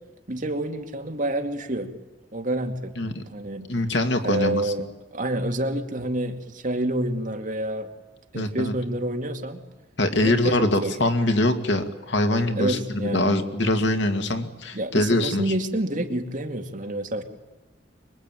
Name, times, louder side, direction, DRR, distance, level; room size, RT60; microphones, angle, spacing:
voice 1, 0.3-1.9 2.3-2.9 3.3-3.7 4.2-7.9 8.3-9.6 10.2-10.9 12.6-13.4 14.7-17.2, right 1 dB, 45° right, 4 dB, 2.5 m, -28 dB
voice 2, 3.7-4.7 8.3-8.7 10.0-15.5, left 1 dB, 75° left, 6 dB, 2.3 m, -23 dB
25.0 x 23.0 x 9.2 m, 1.0 s
head